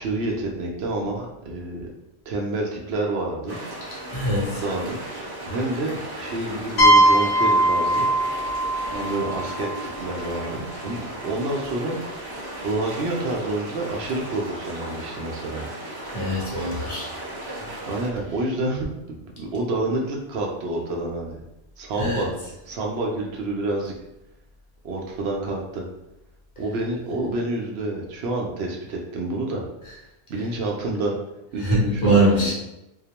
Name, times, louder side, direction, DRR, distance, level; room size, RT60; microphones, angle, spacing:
voice 1, 0.0-1.9 2.3-3.6 4.5-5.0 5.4-8.1 8.9-12.3 12.6-15.7 17.9-21.4 21.8-22.3 22.7-23.9 24.8-25.9 26.6-29.6 30.3-31.2 31.5-32.5, right 2 dB, 75° right, 0 dB, 0.8 m, -28 dB
sound 1, 3.5-18.1, right 1 dB, 25° right, 0.6 m, -36 dB
voice 2, 4.1-4.6 16.1-17.1 22.0-22.3 31.6-32.5, right 1 dB, 50° left, -6 dB, 0.8 m, -22 dB
sound 2, 6.8-10.4, right 1 dB, 70° left, 0.9 m, -20 dB
2.3 x 2.1 x 2.8 m, 0.90 s
omnidirectional pair, 1.1 m